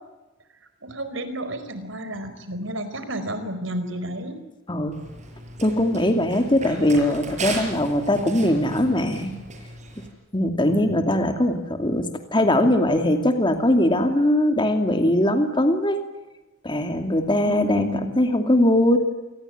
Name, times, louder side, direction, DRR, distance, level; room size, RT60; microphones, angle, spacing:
voice 1, 0.8-4.4 10.7-11.1 17.4-18.1, right 1 dB, 75° right, 10 dB, 4.8 m, -31 dB
voice 2, 4.7-5.0 5.6-9.3 10.3-12.1 12.3-16.0 16.6-19.0, left 1 dB, 25° left, 6 dB, 2.6 m, -21 dB
Run, 4.9-10.1, right 2 dB, 35° right, 6.3 m, -36 dB
28.0 x 20.5 x 9.5 m, 1.1 s
head